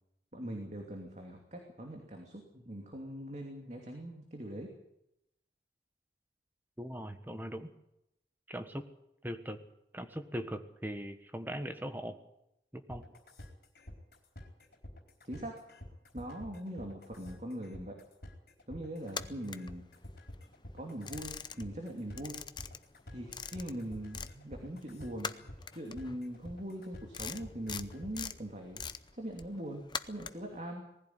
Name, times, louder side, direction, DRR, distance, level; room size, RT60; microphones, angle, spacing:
voice 1, 0.3-4.7 15.2-15.5 16.1-18.0 18.7-19.8 20.7-22.4 23.1-28.8 29.1-30.8, right 1 dB, 40° right, 1 dB, 2.8 m, -42 dB
voice 2, 6.8-7.7 8.5-8.9 9.2-9.6 9.9-12.2 12.7-13.1, equal, 10° right, 7 dB, 1.4 m, -40 dB
sound 1, 12.9-28.3, left 1 dB, 55° left, 4.3 m, -49 dB
sound 2, 19.0-20.4 20.7-21.9 22.1-24.4 24.7-30.6, left 6 dB, 25° left, 0.7 m, -43 dB
20.0 x 15.5 x 9.6 m, 0.82 s
head